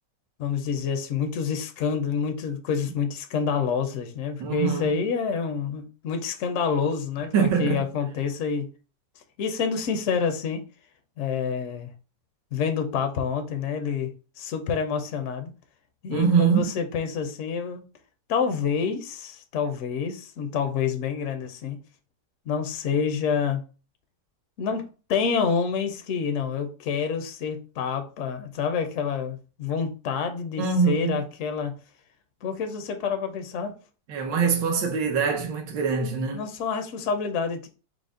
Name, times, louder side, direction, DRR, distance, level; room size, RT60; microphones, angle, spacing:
voice 1, 0.4-8.7 9.4-10.6 11.2-11.9 12.5-14.1 14.4-15.5 16.0-17.8 18.3-21.8 22.5-23.6 24.6-24.8 25.1-31.7 32.4-33.7 36.3-37.7, left 6 dB, 70° left, 0.7 m, -27 dB
voice 2, 4.4-5.0 7.3-7.8 16.1-16.7 30.6-31.2 34.1-36.4, right 6 dB, 90° right, 1.5 m, -23 dB
4.9 x 2.1 x 3.7 m
omnidirectional pair, 1.9 m